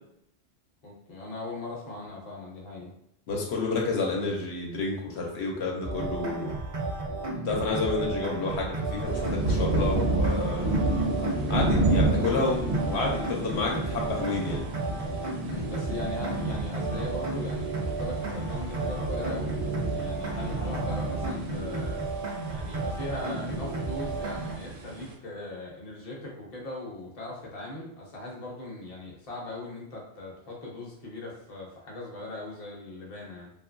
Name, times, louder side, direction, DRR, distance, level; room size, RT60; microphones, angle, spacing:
voice 1, 0.8-2.9 15.4-22.0 22.5-33.5, left 2 dB, 40° left, -3 dB, 0.7 m, -39 dB
voice 2, 3.3-6.5 7.4-10.7 11.5-14.7, left 3 dB, 75° left, -1 dB, 0.9 m, -30 dB
sound 1, 5.8-24.5, right 3 dB, 45° right, 0.4 m, -33 dB
sound 2, 9.0-25.1, right 2 dB, 70° right, 0.8 m, -31 dB
2.8 x 2.4 x 2.5 m, 0.75 s
omnidirectional pair, 1.1 m